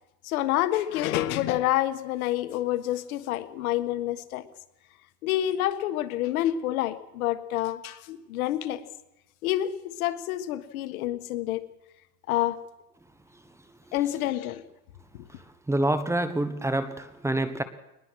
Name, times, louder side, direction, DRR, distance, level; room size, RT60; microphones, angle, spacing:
voice 1, 0.2-4.5 5.2-8.9 9.4-11.7 12.3-12.6 13.9-14.6, left 13 dB, 90° left, 1.5 m, -28 dB
voice 2, 15.4-17.6, right 1 dB, 5° right, 1.2 m, -27 dB
22.5 x 20.5 x 6.3 m
supercardioid pair, 135°, 42 cm